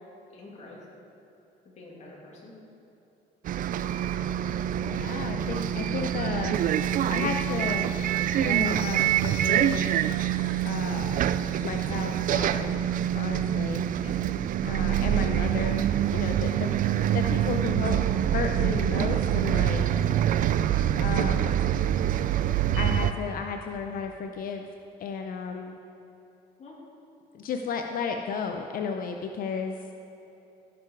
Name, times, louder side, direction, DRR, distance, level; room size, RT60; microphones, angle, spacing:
voice 1, 0.3-0.9 1.6-2.5 14.0-14.2 16.9-17.1 22.1-22.3 26.6-26.8, left 2 dB, 40° left, -3 dB, 2.7 m, -47 dB
Bus, 3.4-23.1, right 10 dB, 55° right, 0.4 m, -26 dB
voice 2, 4.8-6.6 7.1-7.9 8.4-9.9 10.6-11.3 11.6-12.8 13.1-13.8 14.6-16.7 17.1-18.0 18.3-19.9 21.0-21.5 22.8-24.7 25.0-25.8 27.3-29.8, left 6 dB, 55° left, 4 dB, 0.7 m, -33 dB
16.5 x 6.9 x 4.7 m, 3.0 s
cardioid pair, 110°, 17 cm